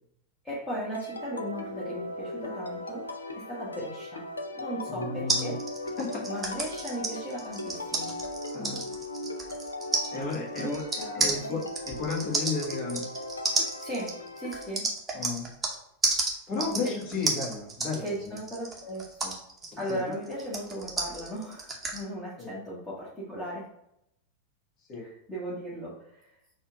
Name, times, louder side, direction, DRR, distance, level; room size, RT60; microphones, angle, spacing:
voice 1, 0.4-3.1 3.4-4.3 4.5-5.6 6.2-8.2 10.6-11.6 13.8-14.9 16.8-16.9 18.0-19.4 19.8-23.7 25.0-26.3, right 1 dB, 15° left, -8 dB, 1.2 m, -37 dB
sound 1, 0.9-14.7, left 2 dB, 75° left, 0.5 m, -38 dB
voice 2, 4.9-5.5 6.0-6.3 8.5-8.9 10.1-10.8 11.1-11.6 11.9-13.1 15.1-15.5 16.5-18.4 19.9-20.0 22.4-22.5 24.9-25.1, left 4 dB, 35° left, -2 dB, 1.4 m, -33 dB
sound 2, 5.3-15.8 16.0-22.0, right 3 dB, 15° right, 0.8 m, -32 dB
4.2 x 2.4 x 4.8 m, 0.79 s
figure-of-eight pair, 90°, 0 cm